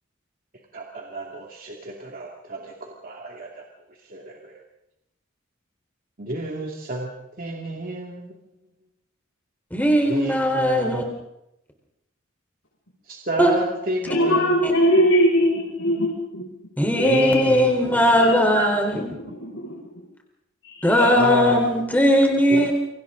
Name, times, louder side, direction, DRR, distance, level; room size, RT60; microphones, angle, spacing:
voice 1, 0.7-3.6 4.1-4.5 6.2-7.1 7.4-8.3 10.0-11.1 13.1-14.5 17.0-17.7 18.5-18.7 21.1-21.6 22.5-22.6, right 1 dB, 45° right, -1 dB, 2.5 m, -31 dB
voice 2, 9.7-11.0 13.4-13.5 14.6-14.7 16.8-19.1 20.8-22.7, equal, 10° left, 2 dB, 4.1 m, -19 dB
voice 3, 14.1-16.4 16.9-18.5 19.1-19.8 20.6-21.6, equal, 90° left, -5 dB, 6.6 m, -22 dB
29.5 x 24.5 x 3.9 m, 0.85 s
head